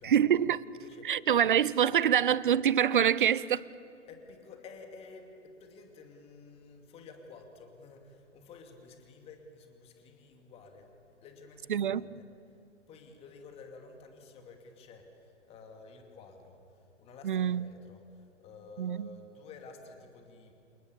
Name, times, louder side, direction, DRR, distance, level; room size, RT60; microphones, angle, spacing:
voice 1, 0.0-0.6 1.0-3.6 11.7-12.1 17.2-17.6 18.8-19.1, right 9 dB, 45° right, 0.7 m, -25 dB
voice 2, 0.7-2.0 4.1-12.3 12.9-20.6, left 4 dB, 15° left, 2.6 m, -52 dB
29.5 x 28.0 x 7.2 m
figure-of-eight pair, 120°, 36 cm